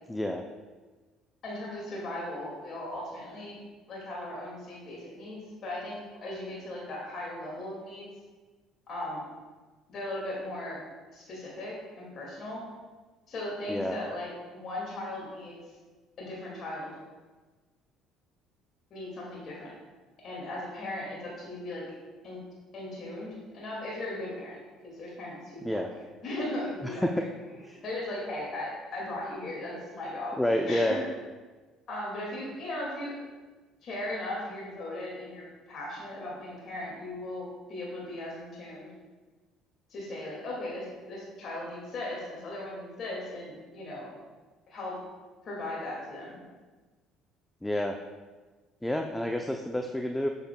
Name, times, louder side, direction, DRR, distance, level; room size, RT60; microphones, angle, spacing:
voice 1, 0.1-0.4 13.7-14.0 25.6-25.9 27.0-27.1 27.6-27.8 30.4-31.0 47.6-48.0 48.8-50.3, left 1 dB, 5° left, 3 dB, 0.5 m, -28 dB
voice 2, 1.4-3.6 3.9-8.1 8.9-9.2 9.9-10.8 11.1-12.7 13.3-15.6 16.2-16.9 18.9-19.7 20.2-21.8 22.2-22.4 22.7-24.6 24.8-25.8 26.2-27.1 27.7-30.4 30.7-31.0 31.9-33.2 33.8-38.9 39.9-44.1 44.7-45.0 45.4-46.4, left 1 dB, 55° left, -4 dB, 2.0 m, -37 dB
7.9 x 6.6 x 2.2 m, 1.3 s
supercardioid pair, 70°, 0 cm